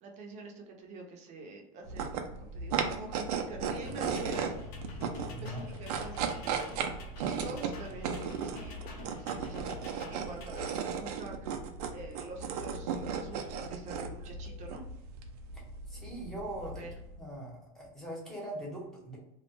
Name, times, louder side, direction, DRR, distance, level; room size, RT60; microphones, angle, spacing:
voice 1, 0.0-4.5 5.4-6.8 7.2-9.7 10.1-11.6 11.9-14.8 16.6-17.0, right 2 dB, 40° right, 1 dB, 0.7 m, -46 dB
sound 1, 1.8-17.2, right 6 dB, 90° right, 0.5 m, -36 dB
sound 2, 3.9-10.7, left 3 dB, 70° left, 0.7 m, -49 dB
sound 3, 3.9-8.1, left 7 dB, 25° left, 0.4 m, -52 dB
voice 2, 5.3-5.7 15.5-16.8 17.2-19.2, right 1 dB, ahead, -4 dB, 1.0 m, -41 dB
2.4 x 2.1 x 3.0 m, 0.86 s
supercardioid pair, 135°, 19 cm